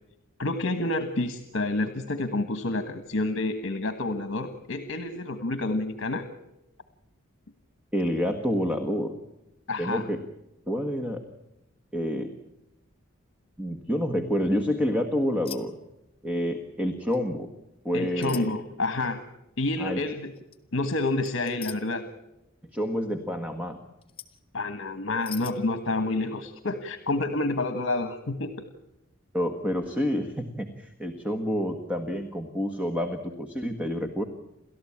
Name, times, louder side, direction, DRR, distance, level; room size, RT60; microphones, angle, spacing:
voice 1, 0.4-6.3 9.7-10.0 17.9-19.2 19.6-20.3 20.7-22.1 24.5-28.6, left 2 dB, 60° left, 9 dB, 1.5 m, -29 dB
voice 2, 7.9-9.1 9.8-10.2 10.7-11.2 11.9-12.3 13.6-15.7 16.2-17.5 17.8-18.5 19.8-20.0 22.7-23.8 29.3-34.2, equal, 5° right, 6 dB, 1.5 m, -28 dB
sound 1, 15.4-15.6 15.9-16.3 17.1-17.3 18.2-18.5 20.3-20.6 21.2-21.8 24.0-24.4 25.2-25.5, left 10 dB, 25° left, 1.8 m, -41 dB
30.0 x 14.0 x 8.7 m, 0.92 s
head